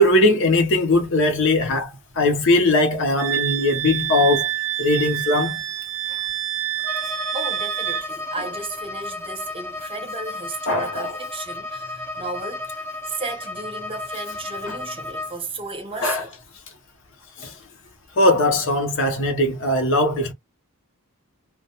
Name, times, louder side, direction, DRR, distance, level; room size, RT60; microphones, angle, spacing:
voice 1, 0.0-1.9 2.2-4.5 4.8-5.6 10.7-11.1 14.7-14.8 16.0-16.2 17.4-17.5 18.2-20.3, left 1 dB, 60° left, 0.7 m, -19 dB
Wind instrument woodwind instrument, 3.2-8.1, right 14 dB, 90° right, 0.6 m, -27 dB
Bowed string instrument, 6.8-15.4, left 2 dB, 10° left, 0.6 m, -33 dB
voice 2, 7.1-12.7 13.0-16.4, right 3 dB, 25° right, 0.8 m, -34 dB
2.2 x 2.1 x 2.8 m
head